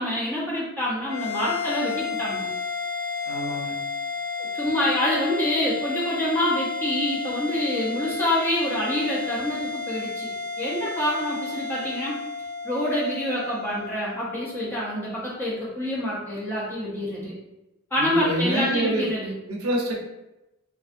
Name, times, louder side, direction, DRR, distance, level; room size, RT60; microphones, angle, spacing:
voice 1, 0.0-2.5 4.5-12.2 12.6-17.3 17.9-19.3, left 1 dB, 10° left, -7 dB, 0.6 m, -26 dB
sound 1, 1.1-15.7, left 4 dB, 85° left, 0.6 m, -32 dB
voice 2, 3.3-3.8 18.0-19.1 19.5-20.0, right 1 dB, 85° right, -1 dB, 0.6 m, -26 dB
2.5 x 2.4 x 2.4 m, 0.97 s
head